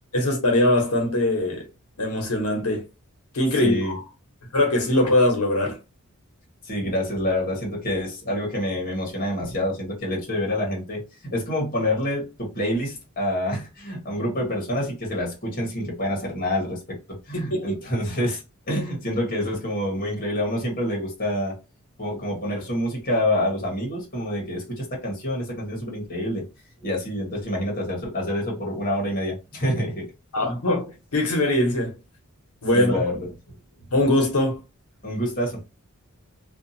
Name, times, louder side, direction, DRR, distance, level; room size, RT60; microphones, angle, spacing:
voice 1, 0.1-1.6 2.0-2.8 3.3-4.0 4.5-5.8 17.5-17.7 30.3-30.9 31.1-31.9 32.6-33.0 33.9-34.6, left 1 dB, 90° left, 0.9 m, -21 dB
voice 2, 3.5-4.0 6.6-18.4 18.7-21.5 22.0-26.5 26.8-30.1 32.7-33.3 35.0-35.6, left 1 dB, 40° left, 1.1 m, -27 dB
2.6 x 2.4 x 2.6 m
head